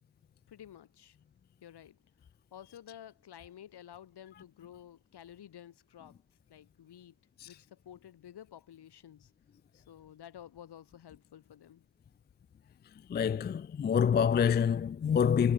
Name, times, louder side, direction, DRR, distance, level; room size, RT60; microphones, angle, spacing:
voice 1, 0.5-1.2 1.6-2.0 2.5-6.2 6.5-7.1 7.4-9.3 9.7-11.8, left 10 dB, 65° left, 3.3 m, -52 dB
voice 2, 13.1-15.5, left 7 dB, 25° left, 0.4 m, -27 dB
hypercardioid pair, 45°, 42 cm